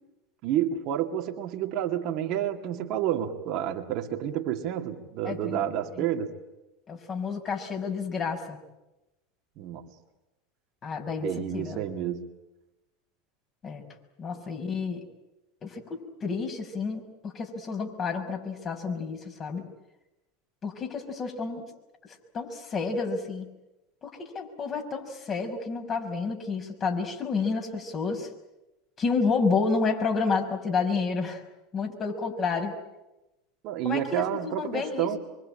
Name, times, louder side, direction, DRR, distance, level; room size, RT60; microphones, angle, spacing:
voice 1, 0.4-6.3 9.6-9.9 11.2-12.2 33.6-35.2, right 11 dB, 55° right, 2.2 m, -29 dB
voice 2, 5.2-5.6 6.0-6.1 6.9-8.6 10.8-11.8 13.6-13.9 14.2-15.0 15.6-19.6 20.6-21.6 22.3-23.4 24.0-28.3 29.0-31.4 31.7-32.7 33.8-35.2, left 4 dB, 35° left, 5.8 m, -30 dB
25.0 x 24.0 x 8.9 m
hypercardioid pair, 80°, 0 cm